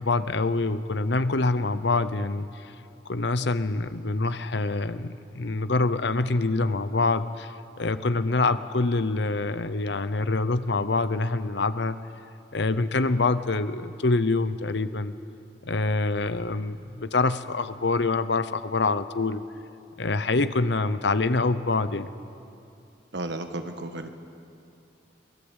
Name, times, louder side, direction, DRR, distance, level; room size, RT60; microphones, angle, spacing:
voice 1, 0.0-2.7 3.1-12.0 12.5-15.1 15.6-19.4 20.0-22.1, left 3 dB, 65° left, 13 dB, 0.8 m, -25 dB
voice 2, 23.1-24.1, right 2 dB, 70° right, 7 dB, 1.4 m, -33 dB
23.0 x 18.5 x 8.1 m, 2.6 s
head